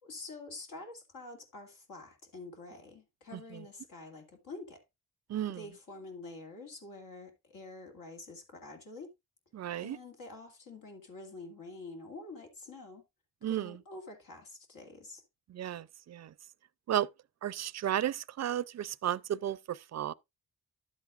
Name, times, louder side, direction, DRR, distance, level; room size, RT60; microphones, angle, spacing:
voice 1, 0.0-4.8 5.5-9.1 9.8-13.0 13.4-15.2, left 2 dB, 80° left, 2.4 m, -47 dB
voice 2, 5.3-5.6 9.5-10.0 13.4-13.8 15.5-16.3 16.9-17.1 17.4-20.1, right 11 dB, 55° right, 0.5 m, -33 dB
11.0 x 8.1 x 2.5 m
cardioid pair, 90°, 33 cm